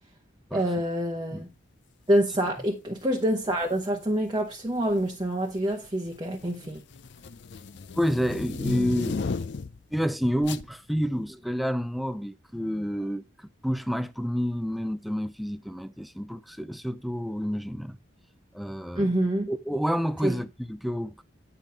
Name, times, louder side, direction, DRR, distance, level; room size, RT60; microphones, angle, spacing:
voice 1, 0.5-1.5 2.1-6.8 19.0-19.5 20.2-20.3, right 1 dB, 20° right, 0.9 m, -26 dB
sound 1, 3.5-3.8 4.8-5.2 5.6-9.8 10.4-10.7, left 4 dB, 55° left, 0.5 m, -34 dB
voice 2, 8.0-9.3 9.9-18.0 18.5-19.1 19.5-21.2, equal, ahead, 0.4 m, -29 dB
9.0 x 5.7 x 4.4 m
head